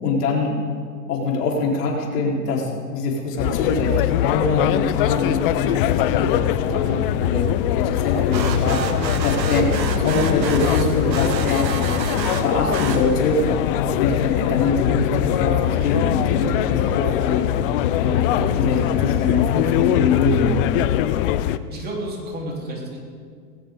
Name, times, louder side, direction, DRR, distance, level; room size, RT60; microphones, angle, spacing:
voice 1, 0.0-0.6 1.1-9.7 10.0-11.7 12.4-13.4 13.7-17.5 17.9-20.6, left 3 dB, 65° left, -2 dB, 4.4 m, -23 dB
sound 1, 3.4-21.6, left 12 dB, 35° left, 0.5 m, -22 dB
sound 2, 8.3-13.5, right 6 dB, 90° right, 1.6 m, -29 dB
voice 2, 21.7-23.0, right 1 dB, 20° right, -3 dB, 3.8 m, -31 dB
19.5 x 17.5 x 3.8 m, 2.1 s
hypercardioid pair, 125°, 50 cm